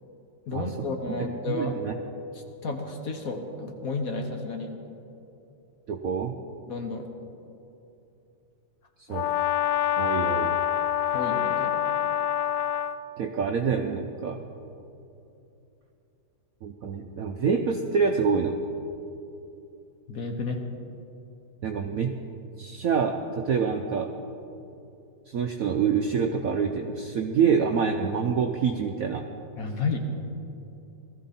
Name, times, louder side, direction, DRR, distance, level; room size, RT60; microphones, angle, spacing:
voice 1, 0.5-1.8 2.3-4.7 6.7-7.0 11.1-11.8 20.1-20.6 29.6-30.0, left 3 dB, 50° left, 4 dB, 1.3 m, -32 dB
voice 2, 1.2-1.9 5.9-6.3 9.1-9.3 10.0-10.5 13.2-14.4 16.6-18.6 21.6-22.1 22.6-24.1 25.3-29.2, right 6 dB, 65° right, 4 dB, 0.8 m, -26 dB
Brass instrument, 9.1-13.0, left 11 dB, 90° left, 0.8 m, -26 dB
18.5 x 14.0 x 4.2 m, 2.8 s
omnidirectional pair, 2.2 m